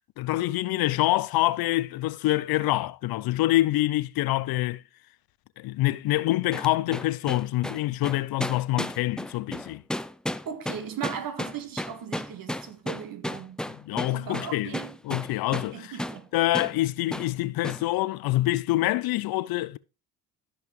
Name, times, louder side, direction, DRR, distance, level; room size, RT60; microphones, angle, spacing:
voice 1, 0.2-4.8 5.6-9.8 13.7-14.7 15.0-16.0 16.3-19.8, left 17 dB, 60° left, 0.6 m, -26 dB
sound 1, 6.5-15.7 16.0-16.2 16.5-16.8 17.1-17.3 17.6-17.9, left 1 dB, ahead, 0.4 m, -33 dB
voice 2, 10.4-13.6 14.1-14.9 15.7-16.3, right 8 dB, 55° right, 1.6 m, -37 dB
13.5 x 5.5 x 3.1 m
supercardioid pair, 75°, 41 cm